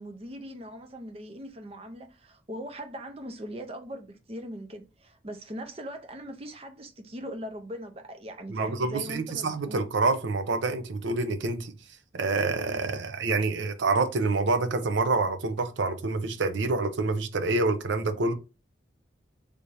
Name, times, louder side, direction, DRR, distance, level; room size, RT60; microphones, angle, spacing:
voice 1, 0.0-9.8, equal, 30° right, 0.5 m, -40 dB
voice 2, 8.5-11.7 12.1-18.3, right 3 dB, 75° right, 0.6 m, -27 dB
3.4 x 2.6 x 3.2 m
head